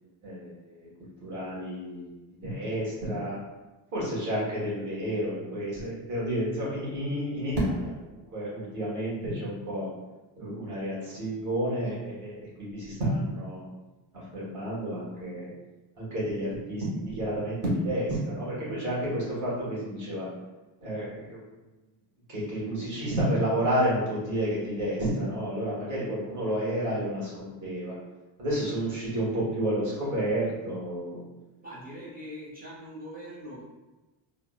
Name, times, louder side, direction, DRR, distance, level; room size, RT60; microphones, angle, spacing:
voice 1, 0.2-0.7 1.2-2.1 2.4-3.4 3.9-9.9 10.4-13.6 14.1-15.5 16.0-20.3 20.8-21.4 22.3-27.9 28.4-31.2, right 1 dB, 40° right, -7 dB, 1.3 m, -30 dB
voice 2, 31.6-33.6, equal, 20° right, -7 dB, 0.5 m, -42 dB
3.5 x 2.0 x 2.3 m, 1.1 s
cardioid pair, 140°, 45 cm